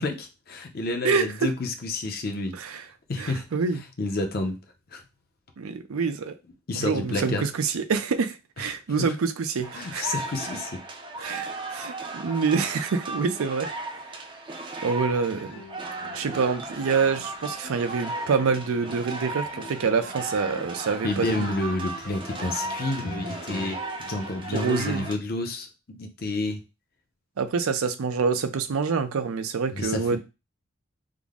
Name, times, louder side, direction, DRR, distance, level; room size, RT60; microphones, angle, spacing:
voice 1, 0.0-2.8 3.1-3.5 4.0-4.6 4.9-5.0 6.7-7.5 9.7-10.8 11.2-11.4 21.0-23.8 24.1-26.6 29.7-30.0, left 2 dB, 45° left, 0.6 m, -29 dB
voice 2, 1.0-1.5 2.5-2.8 3.2-3.8 5.6-6.3 6.8-10.2 11.2-13.7 14.1-14.2 14.8-15.6 16.1-21.5 24.5-25.1 27.4-30.2, right 5 dB, 90° right, 0.5 m, -26 dB
sound 1, 9.6-25.1, right 2 dB, 25° right, 0.4 m, -36 dB
sound 2, 15.3-25.2, left 2 dB, 80° left, 0.8 m, -45 dB
3.7 x 2.0 x 3.5 m
head